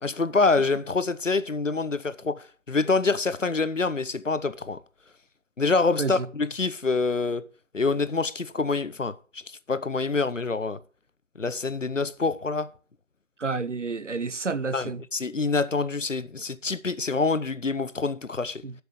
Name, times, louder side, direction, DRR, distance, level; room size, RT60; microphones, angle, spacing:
voice 1, 0.0-4.8 5.6-7.5 7.7-10.8 11.4-12.7 14.7-18.6, left 3 dB, 65° left, 0.8 m, -26 dB
voice 2, 13.4-15.0 18.6-18.7, right 4 dB, 60° right, 0.6 m, -29 dB
7.9 x 7.3 x 6.6 m
figure-of-eight pair, 180°, 40 cm